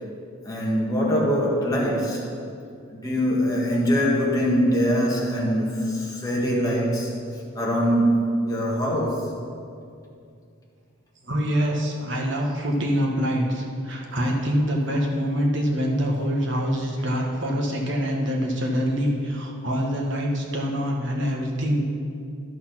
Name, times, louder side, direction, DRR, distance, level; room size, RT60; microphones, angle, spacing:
voice 1, 0.4-2.3 2.9-7.1 7.5-9.3, equal, 15° left, -4 dB, 1.6 m, -23 dB
voice 2, 11.3-21.8, equal, 55° right, -1 dB, 1.4 m, -25 dB
11.0 x 6.4 x 5.9 m, 2.4 s
head